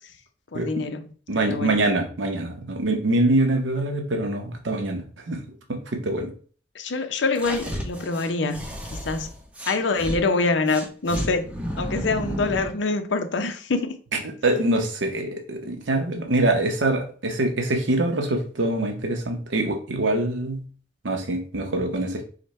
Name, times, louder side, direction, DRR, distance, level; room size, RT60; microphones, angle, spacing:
voice 1, 0.5-1.1 1.3-1.8 6.8-8.6 8.9-9.3 9.7-11.5 11.8-13.9, left 3 dB, 75° left, 0.6 m, -25 dB
voice 2, 1.3-5.0 5.3-5.4 5.7-6.3 14.4-20.6 21.0-22.2, right 2 dB, 80° right, 0.7 m, -24 dB
sound 1, 7.4-10.2 10.7-12.8, equal, 5° right, 0.7 m, -32 dB
5.0 x 2.2 x 4.1 m
head